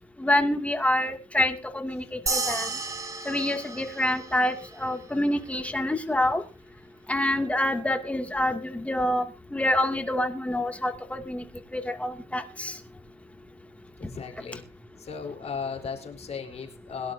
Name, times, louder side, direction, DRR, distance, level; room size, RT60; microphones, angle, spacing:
voice 1, 0.2-2.7 3.3-6.4 7.1-9.2 9.5-11.4 11.7-12.8, left 1 dB, 10° left, 5 dB, 2.3 m, -26 dB
sound 1, 2.3-5.0, right 3 dB, 20° right, 2.1 m, -33 dB
voice 2, 14.1-14.6 15.0-17.1, left 6 dB, 40° left, 4 dB, 4.0 m, -36 dB
22.5 x 11.5 x 2.7 m, 0.32 s
cardioid pair, 110°, 17 cm